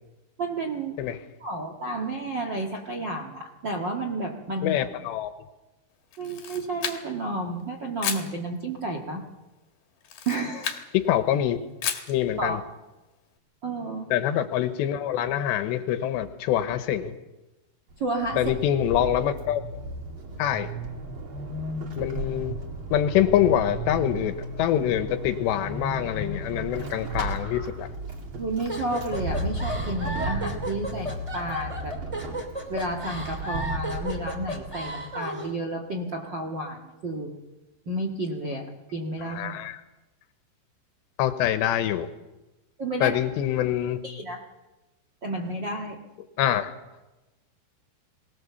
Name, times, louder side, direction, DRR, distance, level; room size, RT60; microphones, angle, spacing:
voice 1, 0.4-0.9 1.4-4.8 6.2-9.2 10.2-10.8 12.4-12.6 13.6-14.1 18.0-18.4 28.4-32.0 32.7-37.3 37.8-39.6 42.8-43.2 44.0-44.4 45.2-46.0, right 2 dB, 65° right, 2 dB, 1.1 m, -31 dB
voice 2, 4.6-5.3 10.9-11.6 12.1-12.6 14.1-17.1 18.4-19.6 20.4-20.7 22.0-22.6 22.9-27.9 39.2-39.8 41.2-42.1 43.0-44.0 46.4-46.7, left 11 dB, 80° left, 9 dB, 3.1 m, -25 dB
Camera, 6.1-7.3 8.0-8.3 10.0-10.9 11.8-12.2, left 8 dB, 55° left, 3.1 m, -32 dB
Vehicle / Accelerating revving vroom / Squeak, 17.9-35.1, right 2 dB, 35° right, 2.4 m, -35 dB
sound 1, 28.7-35.5, right 1 dB, 15° right, 1.2 m, -34 dB
23.5 x 18.0 x 7.0 m, 1.1 s
omnidirectional pair, 5.1 m